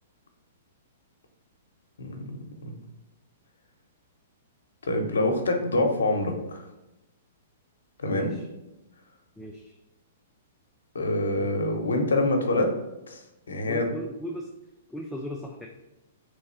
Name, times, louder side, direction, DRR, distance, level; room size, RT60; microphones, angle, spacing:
voice 1, 2.0-2.8 4.8-6.7 8.0-8.3 10.9-12.7 13.1-13.2 13.5-13.9, left 2 dB, 90° left, 4 dB, 0.8 m, -26 dB
voice 2, 8.1-8.4 9.4-9.6 12.5-12.6 13.7-14.5 14.9-15.7, equal, 5° left, 0 dB, 0.4 m, -37 dB
3.5 x 3.2 x 4.3 m, 0.97 s
hypercardioid pair, 135°, 0 cm